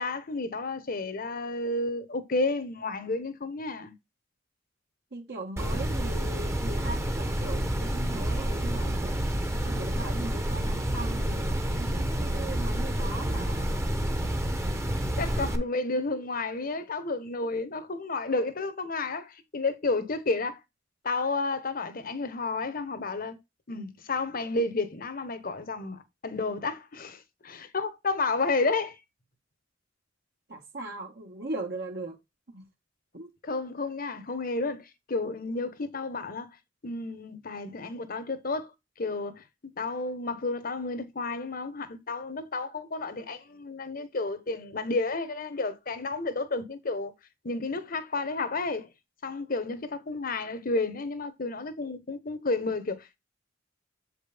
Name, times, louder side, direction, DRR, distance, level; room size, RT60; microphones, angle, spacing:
voice 1, 0.0-3.9 15.2-20.6 21.0-23.4 23.7-29.0 33.4-36.5 36.8-38.7 39.0-39.4 39.8-47.1 47.4-48.9 49.2-53.2, left 3 dB, 50° left, 1.0 m, -31 dB
voice 2, 5.1-13.9 30.5-32.2 32.5-32.6 33.1-33.3, right 2 dB, 60° right, 1.3 m, -39 dB
sound 1, 5.6-15.6, right 1 dB, 15° right, 0.9 m, -29 dB
7.5 x 5.2 x 3.4 m
head